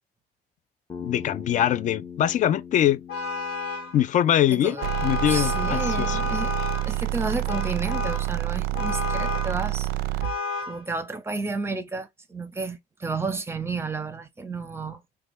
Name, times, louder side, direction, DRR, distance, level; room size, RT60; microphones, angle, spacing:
Bass guitar, 0.9-5.2, left 6 dB, 25° left, 0.7 m, -41 dB
voice 1, 1.0-3.0 3.9-4.8 5.0-6.2, left 11 dB, 50° left, 0.4 m, -23 dB
Vehicle horn car horn honking, 3.1-4.0 4.8-6.9 7.5-8.3 8.7-9.6 10.2-10.8, left 4 dB, 75° left, 1.5 m, -31 dB
voice 2, 4.5-4.9 5.3-9.9 10.7-15.0, right 3 dB, 15° right, 0.7 m, -32 dB
sound 1, 4.8-10.4, right 17 dB, 75° right, 0.4 m, -28 dB
3.3 x 2.2 x 3.0 m
cardioid pair, 110°, 17 cm